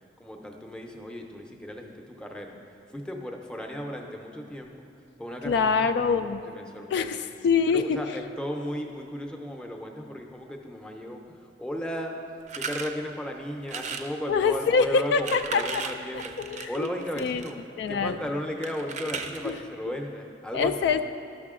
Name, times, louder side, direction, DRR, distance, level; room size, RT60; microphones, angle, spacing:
voice 1, 0.2-2.5 2.9-4.7 5.2-7.2 7.7-12.1 12.5-16.3 16.7-17.6 17.9-20.9, equal, 5° left, 2 dB, 0.6 m, -35 dB
voice 2, 5.4-6.4 6.9-7.8 14.3-15.8 16.1-16.9 17.2-17.4 17.8-18.2 19.4-19.5 20.5-21.0, left 5 dB, 70° left, 10 dB, 0.3 m, -25 dB
sound 1, 12.5-12.9 13.6-14.1 15.0-17.5 18.6-19.6, right 5 dB, 40° right, 0.5 m, -36 dB
12.0 x 5.7 x 3.7 m, 2.7 s
head